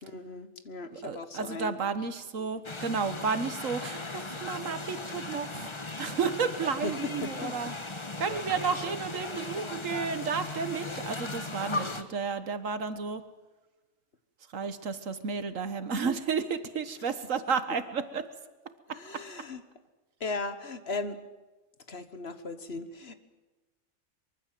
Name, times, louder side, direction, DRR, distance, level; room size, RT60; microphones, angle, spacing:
voice 1, 0.0-1.8 2.4-2.5 6.8-7.8 18.9-19.6 20.2-21.2 21.9-23.1, left 3 dB, 50° left, 10 dB, 1.5 m, -37 dB
voice 2, 0.9-5.7 6.0-7.7 8.2-13.2 14.5-18.3, right 5 dB, 65° right, 11 dB, 1.6 m, -32 dB
sound 1, 2.6-12.0, left 2 dB, 20° left, 1.2 m, -37 dB
24.0 x 23.0 x 7.6 m, 1.2 s
omnidirectional pair, 1.4 m